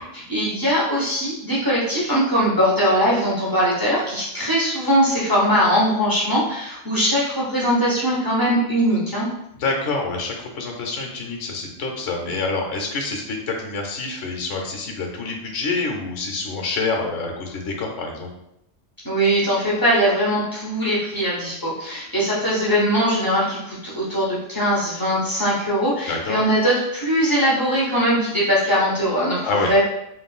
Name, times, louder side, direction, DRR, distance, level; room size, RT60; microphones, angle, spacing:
voice 1, 0.3-9.3 19.0-29.8, equal, 25° left, -6 dB, 0.5 m, -21 dB
voice 2, 9.6-18.3 26.1-26.4 29.4-29.7, left 3 dB, 80° left, 1 dB, 1.0 m, -27 dB
3.0 x 2.5 x 2.3 m, 0.82 s
omnidirectional pair, 1.3 m